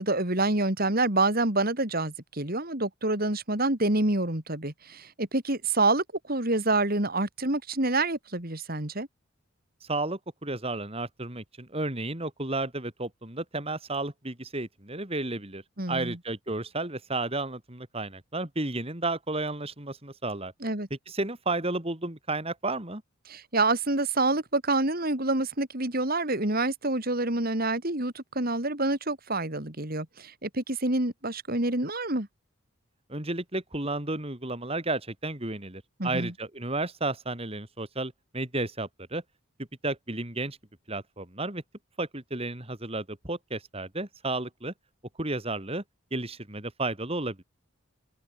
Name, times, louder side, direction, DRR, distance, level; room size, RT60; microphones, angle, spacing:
voice 1, 0.0-9.1 15.8-16.2 20.6-20.9 23.3-32.3 36.0-36.3, right 2 dB, 45° right, 3.1 m, -27 dB
voice 2, 9.8-15.6 15.9-20.5 21.1-23.0 33.1-39.2 39.8-40.6 40.9-41.6 42.0-44.7 45.2-45.8 46.1-47.4, right 2 dB, 25° right, 2.8 m, -32 dB
head